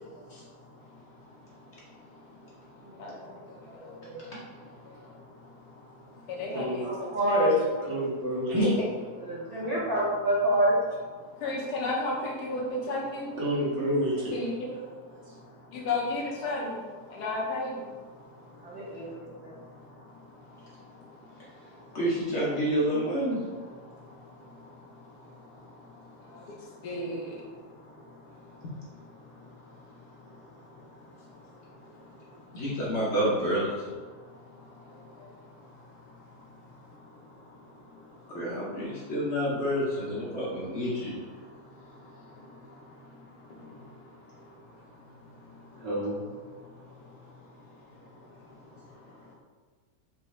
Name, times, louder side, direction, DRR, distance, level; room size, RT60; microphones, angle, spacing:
voice 1, 0.0-7.6 9.3-9.7 11.2-13.4 14.3-22.0 23.6-28.7 29.1-32.6 34.1-38.4 38.7-39.1 41.4-45.9 46.4-49.3, left 2 dB, 70° left, -2 dB, 1.3 m, -40 dB
voice 2, 2.8-3.3 3.6-4.2 6.8-7.6 8.5-8.6 9.2-10.8 18.6-19.5, right 1 dB, 50° right, -8 dB, 0.6 m, -28 dB
voice 3, 6.5-6.8 7.9-8.6 13.4-14.3 45.7-46.2, right 1 dB, 75° right, -7 dB, 1.9 m, -29 dB
voice 4, 8.5-8.8 21.4-21.5 21.9-23.4 28.6-28.7 32.5-33.9 38.3-41.2, equal, 50° left, -6 dB, 1.0 m, -28 dB
4.7 x 2.7 x 3.1 m, 1.5 s
omnidirectional pair, 1.9 m